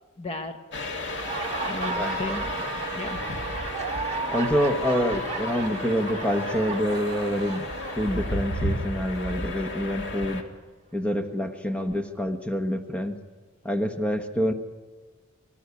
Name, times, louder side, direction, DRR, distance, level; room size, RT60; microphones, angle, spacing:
voice 1, 0.2-0.6 1.6-3.4, left 2 dB, 30° left, 7 dB, 1.0 m, -35 dB
sound 1, 0.7-10.4, left 1 dB, 60° left, 2.2 m, -33 dB
Crying sobbing, 0.9-10.1, right 5 dB, 55° right, 3.7 m, -54 dB
Laughter, 1.0-8.6, right 3 dB, 30° right, 2.4 m, -34 dB
voice 2, 1.9-2.7 4.3-7.7 8.0-10.4 10.9-13.2 13.6-14.5, equal, 5° left, 7 dB, 1.3 m, -27 dB
25.5 x 13.0 x 9.6 m, 1.3 s
head